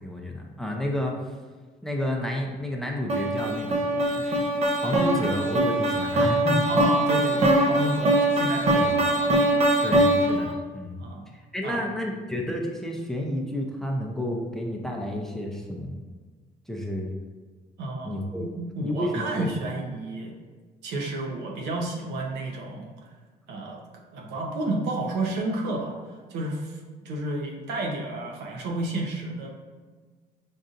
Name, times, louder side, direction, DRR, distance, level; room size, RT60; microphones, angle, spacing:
voice 1, 0.0-1.1 1.8-4.4 4.8-6.6 8.7-8.9 9.8-11.0 11.3-16.0 16.7-17.1 18.0-18.5 18.8-19.5, equal, ahead, 0 dB, 0.5 m, -31 dB
sound 1, 3.1-10.5, right 1 dB, 40° right, 0.7 m, -22 dB
voice 2, 6.7-9.2 11.0-11.2 11.6-11.8 17.8-20.3 20.8-22.9 23.5-23.8 24.1-29.5, right 2 dB, 80° right, 0 dB, 0.8 m, -31 dB
5.4 x 2.6 x 2.5 m, 1.4 s
cardioid pair, 110°, 17 cm